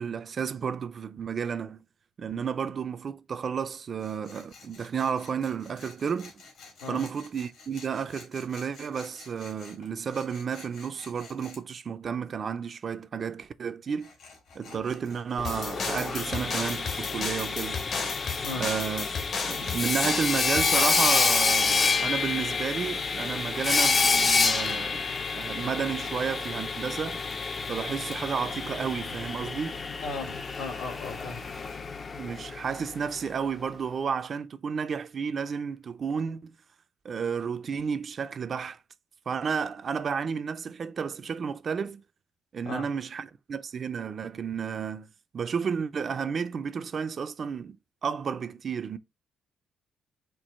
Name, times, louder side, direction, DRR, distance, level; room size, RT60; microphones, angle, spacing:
voice 1, 0.0-1.8 2.2-6.3 6.9-14.1 14.5-17.8 18.5-19.1 19.4-27.2 27.7-30.0 32.2-36.5 37.0-38.8 39.3-42.0 42.5-45.1 45.3-47.8 48.0-49.0, right 6 dB, 35° right, 0.3 m, -32 dB
Tools, 4.0-11.6 13.9-18.6 19.4-21.2, left 4 dB, 70° left, 1.9 m, -50 dB
sound 1, 15.4-21.1, left 5 dB, 55° left, 0.9 m, -34 dB
Sawing, 15.4-33.2, left 4 dB, 30° left, 0.4 m, -28 dB
voice 2, 30.0-31.5 42.6-42.9, left 3 dB, 85° left, 1.6 m, -36 dB
4.5 x 2.5 x 4.2 m
cardioid pair, 155°, 0 cm